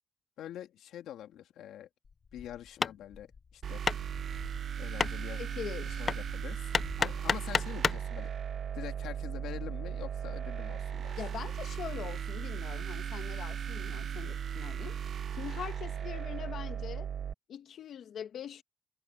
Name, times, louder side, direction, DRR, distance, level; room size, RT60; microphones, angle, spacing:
voice 1, 0.4-1.9 2.3-3.9 4.8-5.4 5.8-6.7 7.0-8.3 8.7-11.2, left 11 dB, 80° left, 2.6 m, -45 dB
Hammer, 2.1-8.1, left 5 dB, 35° left, 0.3 m, -34 dB
sound 1, 3.6-17.3, right 8 dB, 50° right, 0.8 m, -37 dB
voice 2, 5.4-6.0 11.2-17.1 17.5-18.6, left 9 dB, 60° left, 1.7 m, -42 dB
cardioid pair, 110°, 0 cm